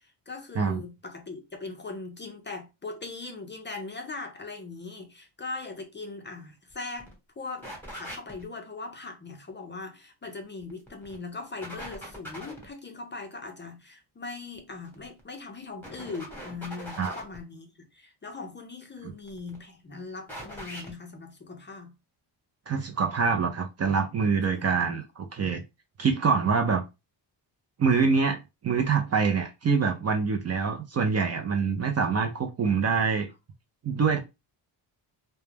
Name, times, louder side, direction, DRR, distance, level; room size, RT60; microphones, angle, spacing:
voice 1, 0.0-7.1 7.4-21.9 24.5-24.6, left 3 dB, 25° left, 0.4 m, -40 dB
sound 1, 6.7-6.8 7.0-7.1 7.6-8.4 10.6-11.2 11.6-12.7 14.9-15.2 15.8-17.4 19.1-19.6 20.3-20.9, equal, 5° left, 1.1 m, -41 dB
voice 2, 22.7-25.6 26.0-26.8 27.8-33.3 33.8-34.2, right 5 dB, 35° right, 0.4 m, -25 dB
2.2 x 2.1 x 3.2 m
cardioid pair, 90°, 48 cm